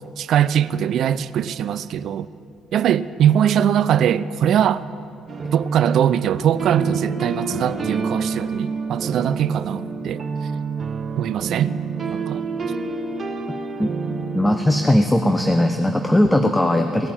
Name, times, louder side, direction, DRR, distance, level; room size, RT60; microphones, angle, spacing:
voice 1, 0.2-2.3 2.7-4.8 5.5-10.2 11.2-11.8 12.1-12.4, right 9 dB, 60° right, 0.4 m, -21 dB
sound 1, 5.3-14.8, right 5 dB, 45° right, 1.3 m, -28 dB
voice 2, 14.3-17.1, left 1 dB, 10° left, 1.0 m, -18 dB
18.0 x 9.4 x 7.7 m
hypercardioid pair, 50°, 0 cm